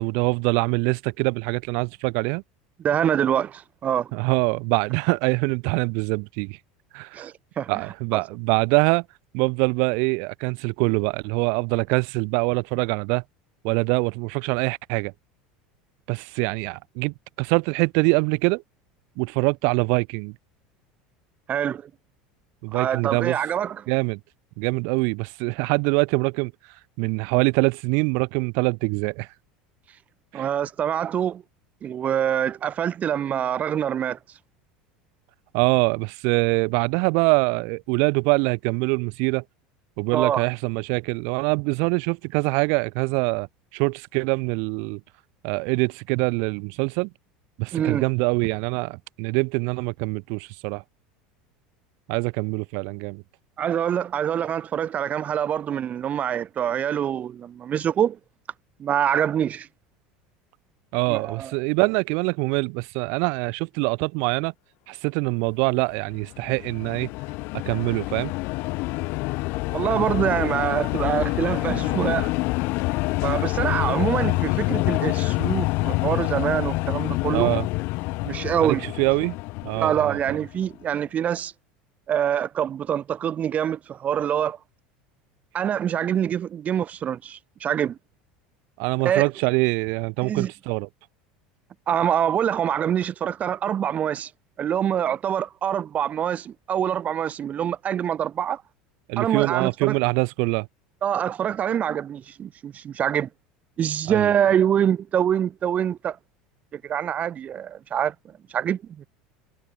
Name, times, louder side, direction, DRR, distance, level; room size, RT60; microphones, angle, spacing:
voice 1, 0.0-2.4 4.1-6.6 6.9-7.3 7.7-9.0 9.3-13.2 13.6-15.1 16.1-18.6 19.2-20.3 22.6-23.4 23.9-24.2 24.6-26.5 27.0-29.3 30.3-30.5 35.5-39.4 40.0-43.5 43.7-45.0 45.4-47.1 47.6-50.8 52.1-53.2 60.9-64.5 64.9-67.1 67.7-68.3 77.3-77.7 78.6-79.4 79.6-80.4 88.8-90.9 99.1-100.7 104.1-104.3, right 36 dB, 65° right, 6.1 m, -24 dB
voice 2, 2.8-4.1 7.1-7.8 8.1-8.2 21.5-21.9 22.7-23.9 30.3-31.4 31.8-34.2 40.1-40.4 47.7-48.0 53.6-58.2 58.8-59.7 61.1-61.5 69.7-72.3 73.2-77.5 78.2-78.9 79.7-81.5 82.1-84.6 85.5-88.0 89.0-89.3 90.2-90.5 91.9-94.3 94.6-98.6 99.2-99.9 101.0-103.3 103.8-106.2 106.7-108.1 108.5-109.1, right 9 dB, 40° right, 8.0 m, -25 dB
sound 1, 66.1-80.6, left 24 dB, 65° left, 5.1 m, -27 dB
supercardioid pair, 95°, 4 cm